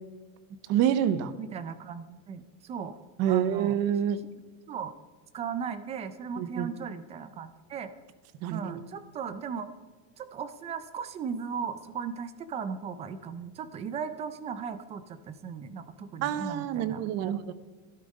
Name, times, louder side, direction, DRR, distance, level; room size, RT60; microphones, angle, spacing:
voice 1, 0.7-1.3 3.2-4.2 6.4-6.7 8.4-8.8 16.2-17.4, right 10 dB, 40° right, 15 dB, 0.8 m, -27 dB
voice 2, 1.4-3.0 3.3-3.7 4.7-4.9 5.3-7.9 8.5-9.7 10.2-17.5, right 6 dB, 15° right, 13 dB, 0.3 m, -37 dB
13.0 x 11.5 x 5.3 m, 1.3 s
supercardioid pair, 160°, 41 cm